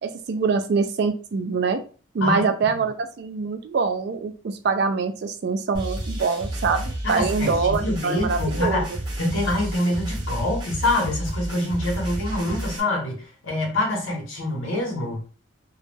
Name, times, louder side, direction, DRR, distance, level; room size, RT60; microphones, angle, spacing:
voice 1, 0.0-1.8 2.1-8.8, right 4 dB, 50° right, 7 dB, 0.3 m, -24 dB
sound 1, 5.7-12.8, right 1 dB, 20° right, 0.7 m, -31 dB
voice 2, 7.0-8.9 9.2-15.2, left 1 dB, 75° left, 0 dB, 0.9 m, -25 dB
2.2 x 2.0 x 3.2 m, 0.37 s
head